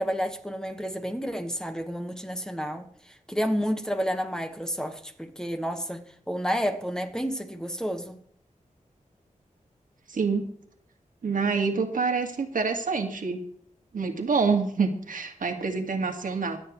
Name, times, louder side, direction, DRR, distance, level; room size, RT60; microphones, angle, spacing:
voice 1, 0.0-8.2, equal, 5° left, 6 dB, 1.5 m, -30 dB
voice 2, 10.1-10.5 11.2-13.4 13.9-16.6, right 4 dB, 85° right, 4 dB, 2.0 m, -26 dB
24.5 x 9.0 x 3.1 m, 0.64 s
wide cardioid pair, 105°, 14 cm